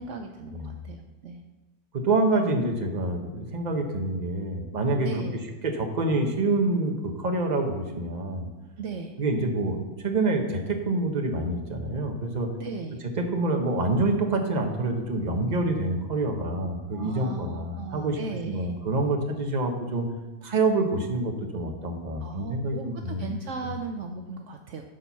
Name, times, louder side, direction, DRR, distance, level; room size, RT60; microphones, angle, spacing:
voice 1, 0.0-1.4 5.0-5.4 8.8-9.1 12.6-13.0 16.9-18.8 22.2-24.8, right 4 dB, 70° right, 4 dB, 0.7 m, -37 dB
voice 2, 1.9-5.2 5.6-8.5 9.2-12.5 13.1-18.2 18.5-20.1 20.4-23.3, right 2 dB, 30° right, 3 dB, 0.9 m, -27 dB
11.5 x 4.5 x 5.7 m, 1.1 s
omnidirectional pair, 1.9 m